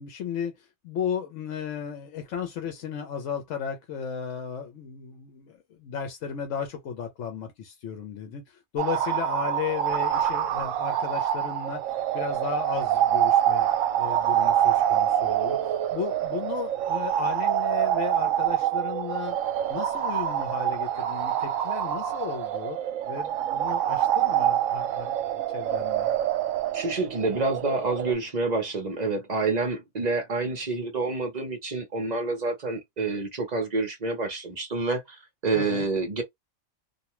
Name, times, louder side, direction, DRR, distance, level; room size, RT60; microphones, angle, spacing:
voice 1, 0.0-13.7 14.0-19.4 19.7-22.8 23.0-26.1 35.5-35.9, left 7 dB, 65° left, 0.9 m, -35 dB
sound 1, 8.8-28.1, right 11 dB, 70° right, 1.0 m, -26 dB
voice 2, 26.7-36.2, right 3 dB, 40° right, 0.6 m, -28 dB
2.5 x 2.2 x 2.9 m
omnidirectional pair, 1.5 m